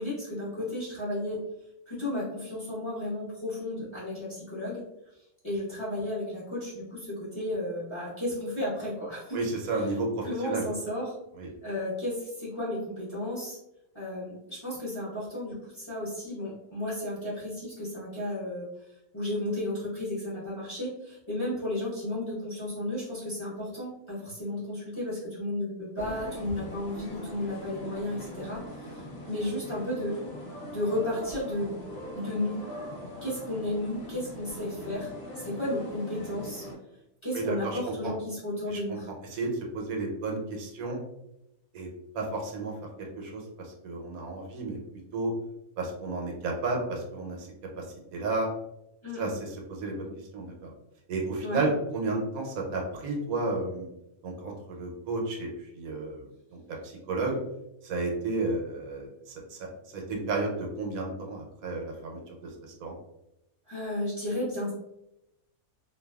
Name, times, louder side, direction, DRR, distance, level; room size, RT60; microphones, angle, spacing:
voice 1, 0.0-1.4 1.9-4.8 5.4-9.4 9.7-9.8 10.2-11.1 11.6-13.6 13.9-18.6 19.1-30.1 30.7-31.8 32.1-32.5 33.2-36.6 37.2-39.1 49.0-49.3 51.4-51.6 63.7-64.7, left 1 dB, 25° left, -9 dB, 0.8 m, -33 dB
voice 2, 9.3-10.6 11.4-11.5 37.3-38.1 38.7-38.8 39.3-41.0 41.7-41.9 42.1-42.7 43.0-44.8 45.1-45.3 45.8-47.5 47.8-47.9 48.1-48.5 49.2-50.1 50.3-50.7 51.1-53.9 54.2-57.4 57.8-59.6 59.9-62.4 62.6-62.9, right 3 dB, 80° right, 0 dB, 1.1 m, -32 dB
sound 1, 26.0-36.7, equal, 55° left, 0.8 m, -41 dB
2.5 x 2.2 x 2.2 m, 0.87 s
omnidirectional pair, 1.5 m